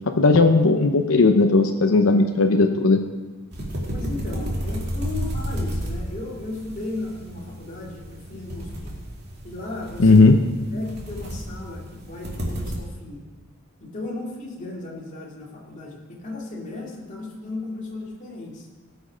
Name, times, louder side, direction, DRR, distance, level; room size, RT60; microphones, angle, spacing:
voice 1, 0.2-3.0 10.0-10.4, left 3 dB, 85° left, 4 dB, 0.7 m, -16 dB
sound 1, 3.5-12.8, equal, 55° right, 2.5 m, -32 dB
voice 2, 3.9-8.9 9.4-10.4 10.7-13.2 13.8-18.7, left 2 dB, 40° left, -3 dB, 2.4 m, -35 dB
18.0 x 6.4 x 5.1 m, 1.3 s
head